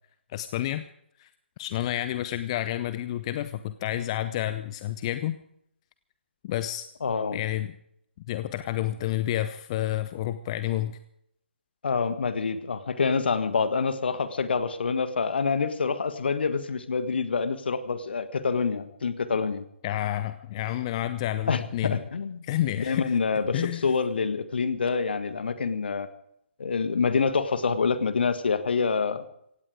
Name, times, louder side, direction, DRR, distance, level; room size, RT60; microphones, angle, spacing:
voice 1, 0.3-0.8 1.2-1.3 1.6-5.4 6.4-6.8 7.3-7.7 8.3-11.0 19.8-22.0 22.4-23.2 23.5-23.9, left 13 dB, 30° left, 12 dB, 0.6 m, -29 dB
voice 2, 7.0-7.4 11.8-19.6 21.5-22.4 22.8-26.1 26.6-29.2, left 5 dB, 55° left, 11 dB, 1.6 m, -26 dB
17.0 x 16.5 x 5.0 m, 0.73 s
figure-of-eight pair, 135°, 6 cm